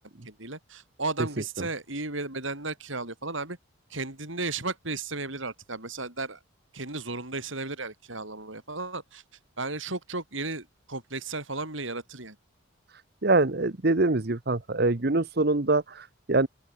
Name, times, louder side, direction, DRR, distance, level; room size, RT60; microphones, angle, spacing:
voice 1, 0.2-3.6 3.9-6.4 6.7-9.2 9.6-12.4, right 3 dB, 70° right, 6.6 m, -34 dB
voice 2, 13.2-16.5, right 2 dB, 50° right, 1.1 m, -24 dB
open air
head